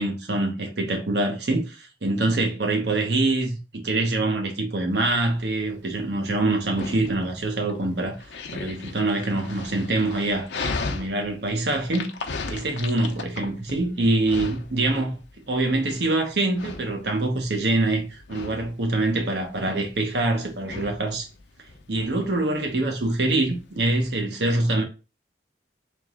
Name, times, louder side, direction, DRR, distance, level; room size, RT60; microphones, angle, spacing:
voice 1, 0.0-8.2 8.5-12.1 12.5-15.2 15.5-21.3 21.9-24.8, right 2 dB, 75° right, 1.0 m, -25 dB
Dog, 4.9-24.1, left 3 dB, 85° left, 0.7 m, -37 dB
3.6 x 3.0 x 3.6 m
head